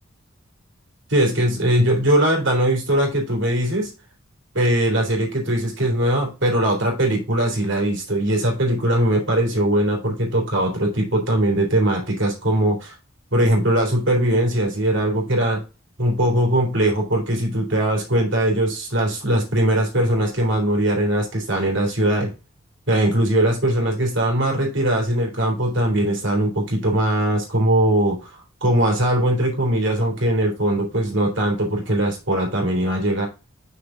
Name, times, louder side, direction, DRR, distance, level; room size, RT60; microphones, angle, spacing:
voice 1, 1.1-3.9 4.5-12.9 13.3-15.6 16.0-22.3 22.9-33.3, right 1 dB, 60° right, 0 dB, 2.9 m, -20 dB
5.9 x 5.2 x 3.7 m, 0.30 s
head